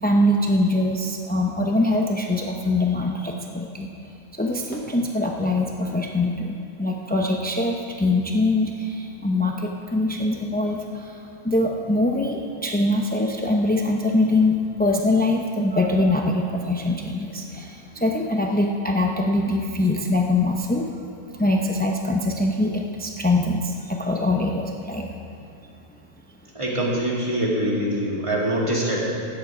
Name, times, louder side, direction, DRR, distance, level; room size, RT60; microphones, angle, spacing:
voice 1, 0.0-3.9 4.4-20.9 21.4-25.4, left 2 dB, 15° left, 1 dB, 0.3 m, -23 dB
voice 2, 26.5-29.0, right 1 dB, 20° right, -5 dB, 2.5 m, -24 dB
16.5 x 10.5 x 5.0 m, 2.5 s
omnidirectional pair, 1.6 m